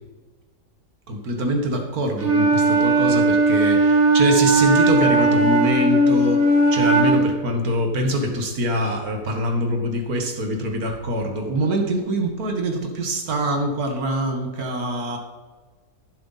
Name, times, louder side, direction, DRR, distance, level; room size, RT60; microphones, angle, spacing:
voice 1, 1.1-15.2, equal, 65° right, 3 dB, 2.0 m, -24 dB
Wind instrument woodwind instrument, 2.2-7.4, right 2 dB, 35° right, 2.0 m, -17 dB
14.5 x 7.7 x 4.1 m, 1.4 s
omnidirectional pair, 1.8 m